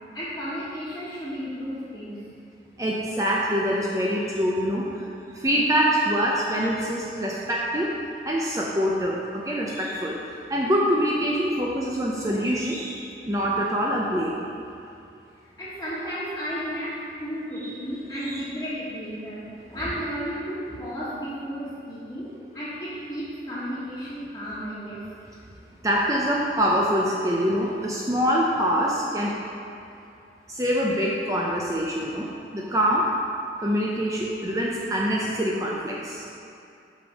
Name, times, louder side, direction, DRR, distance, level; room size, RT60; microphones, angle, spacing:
voice 1, 0.1-2.2 15.6-22.3 22.5-25.0, equal, 15° left, -12 dB, 1.4 m, -33 dB
voice 2, 2.8-5.1 5.3-7.9 8.2-14.5 18.2-18.4 25.8-29.4 30.5-33.1 33.6-36.3, equal, 20° right, -3 dB, 0.6 m, -25 dB
6.5 x 5.1 x 6.3 m, 2.6 s
head